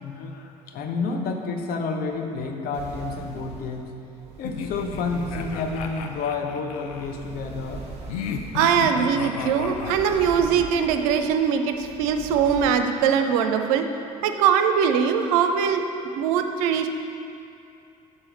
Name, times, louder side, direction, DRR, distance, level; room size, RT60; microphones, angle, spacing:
voice 1, 0.0-3.9 4.4-7.8, left 4 dB, 50° left, 3 dB, 0.9 m, -30 dB
sound 1, 2.7-12.7, right 3 dB, 35° right, 1.6 m, -41 dB
sound 2, 4.4-7.1 8.1-10.7, left 6 dB, 75° left, 0.5 m, -34 dB
voice 2, 8.5-13.9 14.2-15.8 16.2-16.9, right 7 dB, 65° right, 7 dB, 0.5 m, -21 dB
6.9 x 4.3 x 6.5 m, 2.7 s
figure-of-eight pair, 55°, 19 cm